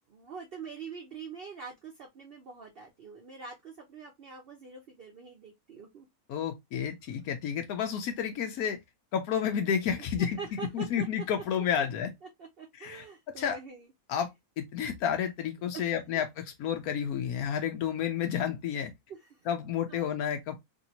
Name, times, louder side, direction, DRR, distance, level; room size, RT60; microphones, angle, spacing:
voice 1, 0.1-6.1 10.2-11.1 12.2-13.9 15.7-16.2 19.1-19.5 19.9-20.1, right 5 dB, 50° right, 0.7 m, -44 dB
voice 2, 6.3-8.8 9.1-10.4 10.7-12.1 12.8-13.0 13.4-13.6 14.1-14.3 14.6-18.9 19.5-20.6, left 8 dB, 80° left, 1.1 m, -30 dB
3.1 x 2.6 x 2.7 m
omnidirectional pair, 1.6 m